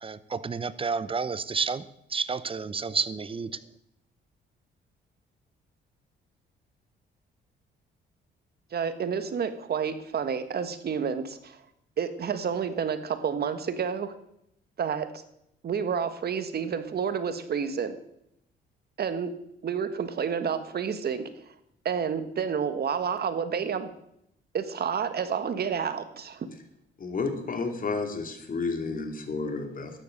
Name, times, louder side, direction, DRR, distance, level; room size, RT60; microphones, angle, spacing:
voice 1, 0.0-3.6, right 5 dB, 25° right, 16 dB, 0.8 m, -30 dB
voice 2, 8.7-11.6 12.0-14.1 14.8-15.1 15.6-18.0 19.0-19.3 19.6-21.3 21.8-23.9 24.5-26.5, right 7 dB, 55° right, 11 dB, 1.5 m, -29 dB
voice 3, 27.0-29.9, left 4 dB, 45° left, 5 dB, 2.7 m, -31 dB
13.0 x 10.0 x 6.6 m, 0.78 s
cardioid pair, 90°, 20 cm